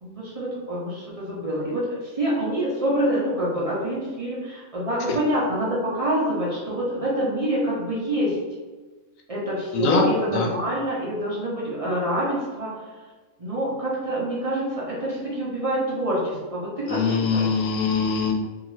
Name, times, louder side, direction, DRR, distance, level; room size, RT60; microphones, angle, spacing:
voice 1, 0.0-8.4 9.3-12.7 13.4-17.5, right 1 dB, 50° right, -6 dB, 0.4 m, -26 dB
voice 2, 9.7-10.0 10.3-10.5 16.9-18.3, left 5 dB, 80° left, 2 dB, 1.0 m, -22 dB
2.7 x 2.4 x 3.0 m, 1.3 s
omnidirectional pair, 1.4 m